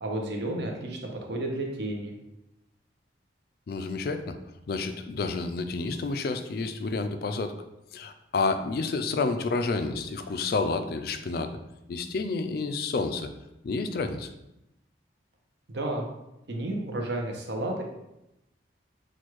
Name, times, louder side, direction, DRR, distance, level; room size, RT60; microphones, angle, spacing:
voice 1, 0.0-2.1 15.7-16.0 16.5-17.8, right 1 dB, 65° right, 1 dB, 0.8 m, -32 dB
voice 2, 3.7-4.4 4.7-7.6 7.9-11.5 11.9-13.3 13.6-14.3, left 3 dB, 55° left, 8 dB, 0.4 m, -29 dB
6.2 x 2.3 x 3.0 m, 0.89 s
head